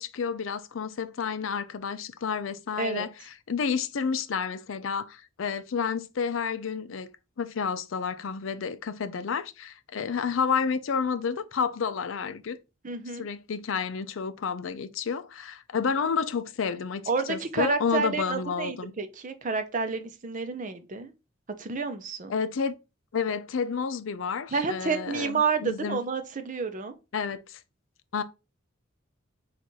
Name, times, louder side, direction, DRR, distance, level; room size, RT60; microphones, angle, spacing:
voice 1, 0.0-3.1 3.5-7.1 7.4-12.6 13.1-18.9 22.3-22.8 23.1-26.0 27.1-27.6 28.1-28.2, left 6 dB, 80° left, 0.5 m, -30 dB
voice 2, 12.8-13.2 17.1-21.1 21.6-22.3 24.5-26.9, right 4 dB, 40° right, 0.6 m, -29 dB
4.1 x 2.5 x 4.4 m
head